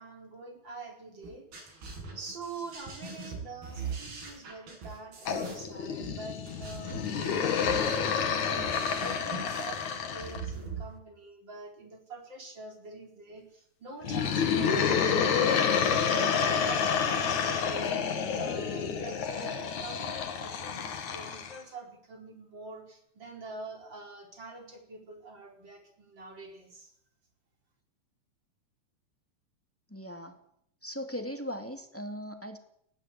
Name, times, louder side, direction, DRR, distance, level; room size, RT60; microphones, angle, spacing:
voice 1, 0.0-1.5 2.1-7.1 7.4-26.9, right 2 dB, 30° right, 3 dB, 4.8 m, -45 dB
sound 1, 1.2-10.8, right 5 dB, 85° right, 8.9 m, -42 dB
sound 2, 5.3-10.5 14.0-21.6, left 6 dB, 55° left, 3.3 m, -29 dB
voice 2, 29.9-30.4 30.8-32.6, equal, 5° left, 5 dB, 1.5 m, -38 dB
21.0 x 15.0 x 8.5 m, 0.72 s
omnidirectional pair, 4.3 m